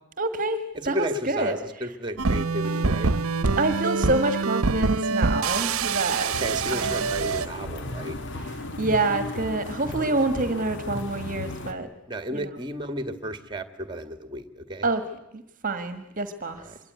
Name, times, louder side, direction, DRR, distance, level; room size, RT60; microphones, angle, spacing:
voice 1, 0.2-1.7 3.6-6.3 6.7-7.1 8.4-11.9 12.3-12.5 14.8-15.0 15.3-16.7, right 2 dB, 40° right, 10 dB, 1.6 m, -27 dB
voice 2, 0.7-3.1 6.2-8.2 12.1-14.9 16.7-16.8, right 1 dB, 20° right, 11 dB, 1.9 m, -33 dB
sound 1, 2.2-7.5, right 4 dB, 80° right, 0.9 m, -25 dB
sound 2, 6.3-11.7, left 1 dB, 55° left, 2.3 m, -35 dB
25.5 x 23.0 x 9.4 m, 0.85 s
head